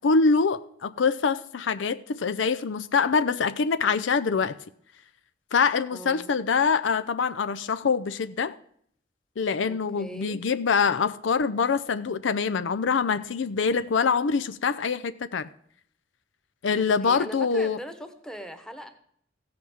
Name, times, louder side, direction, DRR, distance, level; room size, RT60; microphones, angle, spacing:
voice 1, 0.0-4.6 5.5-8.5 9.4-15.5 16.6-17.8, left 5 dB, 75° left, 0.5 m, -24 dB
voice 2, 5.9-6.3 9.7-10.4 17.0-18.9, equal, 5° left, 1.2 m, -40 dB
15.5 x 5.9 x 7.2 m
head